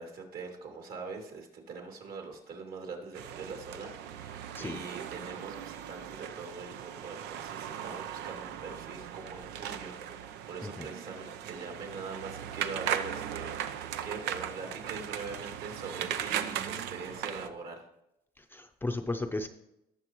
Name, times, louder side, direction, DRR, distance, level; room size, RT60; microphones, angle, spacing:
voice 1, 0.0-17.9, right 4 dB, 60° right, 2 dB, 2.6 m, -43 dB
sound 1, 3.1-17.5, right 10 dB, 90° right, 0.6 m, -38 dB
voice 2, 18.5-19.5, left 2 dB, 10° left, 5 dB, 0.6 m, -34 dB
18.5 x 6.8 x 3.0 m, 0.85 s
cardioid pair, 110°, 17 cm